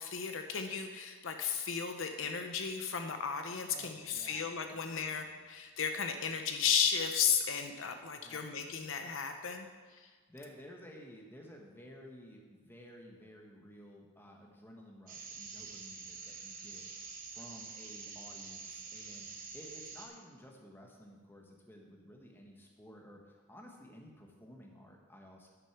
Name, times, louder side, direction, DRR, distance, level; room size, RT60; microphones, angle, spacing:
voice 1, 0.0-10.1, left 7 dB, 60° left, 6 dB, 0.7 m, -34 dB
voice 2, 3.7-5.4 8.2-9.1 10.0-25.5, equal, 10° left, 0 dB, 1.2 m, -54 dB
sound 1, 15.1-20.1, right 5 dB, 40° right, 1.2 m, -47 dB
9.8 x 6.5 x 5.9 m, 1.4 s
head